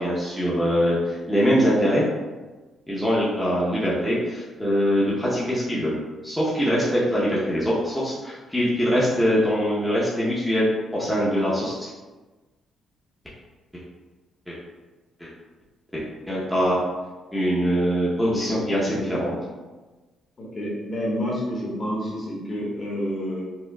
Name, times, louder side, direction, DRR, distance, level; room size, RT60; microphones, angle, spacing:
voice 1, 0.0-2.0 2.9-5.9 6.2-10.7 10.9-11.9 14.5-14.6 15.2-15.3 15.9-16.8 17.3-19.4, equal, 5° left, -8 dB, 0.7 m, -23 dB
voice 2, 20.4-23.4, equal, 40° left, -5 dB, 1.1 m, -29 dB
4.5 x 2.2 x 2.2 m, 1.2 s
cardioid pair, 90°, 0 cm